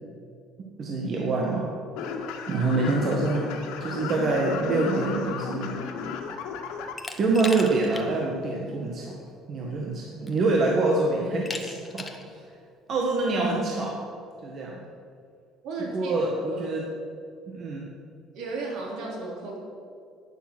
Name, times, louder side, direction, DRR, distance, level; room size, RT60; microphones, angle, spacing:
voice 1, 0.8-1.7 2.5-3.5 3.8-5.7 7.2-9.2 9.5-12.4 12.9-14.0 14.4-14.8 15.9-16.8 17.5-17.9, right 3 dB, 35° right, -1 dB, 1.6 m, -26 dB
sound 1, 1.9-6.9, left 6 dB, 90° left, 1.6 m, -34 dB
Glass, 7.0-8.1 8.5-8.6 9.7-9.8 10.3-10.7 11.5-12.3, left 3 dB, 10° left, 1.0 m, -37 dB
voice 2, 15.6-16.1 16.4-16.7 18.3-19.6, right 3 dB, 65° right, -2 dB, 3.8 m, -34 dB
12.0 x 10.5 x 6.2 m, 2.3 s
cardioid pair, 160°, 0 cm